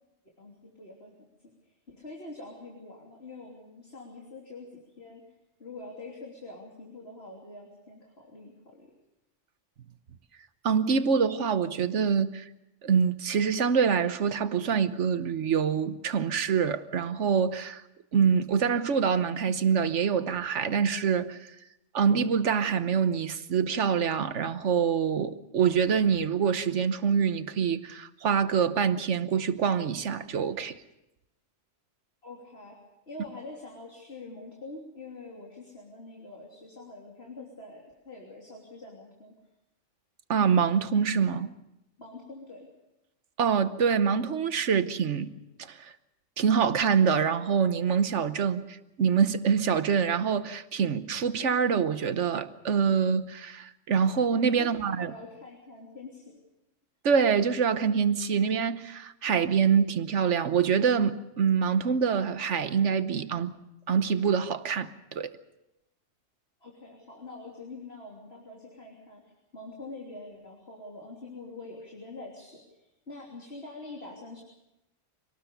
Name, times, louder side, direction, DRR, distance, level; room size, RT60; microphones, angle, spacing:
voice 1, 0.4-1.1 1.4-5.2 5.6-8.9 32.2-32.8 33.1-39.4 42.0-42.7 54.6-56.4 66.6-69.2 69.5-74.4, left 2 dB, 55° left, 3.5 m, -45 dB
voice 2, 10.6-12.5 12.8-17.8 18.1-21.5 21.9-30.8 40.3-41.5 43.4-45.3 45.7-45.9 46.4-55.1 57.0-63.5 63.9-65.3, right 6 dB, 75° right, 1.3 m, -25 dB
25.0 x 19.0 x 6.8 m
omnidirectional pair, 1.2 m